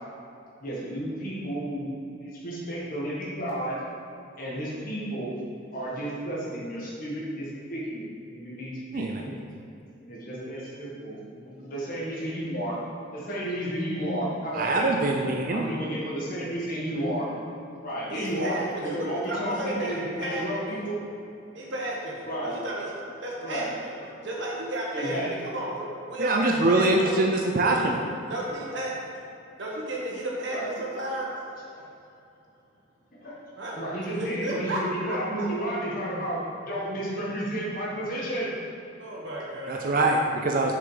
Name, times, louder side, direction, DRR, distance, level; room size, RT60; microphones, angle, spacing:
voice 1, 0.6-1.9 2.2-3.7 4.4-5.3 5.7-9.4 10.0-12.8 13.1-14.9 15.5-17.3 17.8-21.0 22.2-22.5 23.4-23.7 24.9-25.4 30.5-30.7 33.2-33.4 33.7-38.5 40.7-40.8, right 1 dB, 45° left, -7 dB, 1.7 m, -32 dB
voice 2, 14.5-15.7 26.2-28.0 39.7-40.8, right 2 dB, 45° right, 1 dB, 0.5 m, -23 dB
voice 3, 18.1-20.8 21.5-27.3 27.6-27.8 28.3-28.9 29.6-31.3 33.6-33.8 34.2-34.8 35.1-35.5 39.0-40.0, right 1 dB, 70° right, -4 dB, 1.5 m, -33 dB
6.9 x 5.8 x 5.0 m, 2.7 s
head